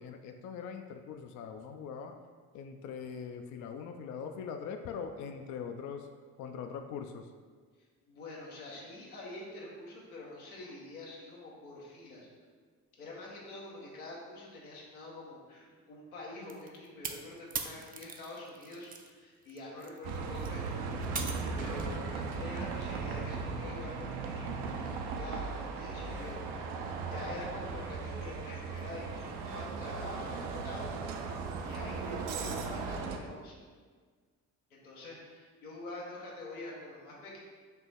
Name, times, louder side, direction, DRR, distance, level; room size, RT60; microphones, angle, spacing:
voice 1, 0.0-2.2 2.5-6.1 6.4-7.3, left 6 dB, 45° left, 6 dB, 0.4 m, -41 dB
voice 2, 8.1-12.3 13.0-21.3 21.6-24.7 25.1-26.8 27.0-31.0 31.6-33.6 34.7-37.4, left 2 dB, 85° left, -4 dB, 0.9 m, -46 dB
sound 1, 16.5-19.1 19.4-22.0, right 5 dB, 20° right, 0.4 m, -41 dB
Bus, 20.0-33.2, right 4 dB, 65° right, 0.6 m, -37 dB
4.5 x 2.9 x 3.4 m, 1.5 s
figure-of-eight pair, 45°, 43 cm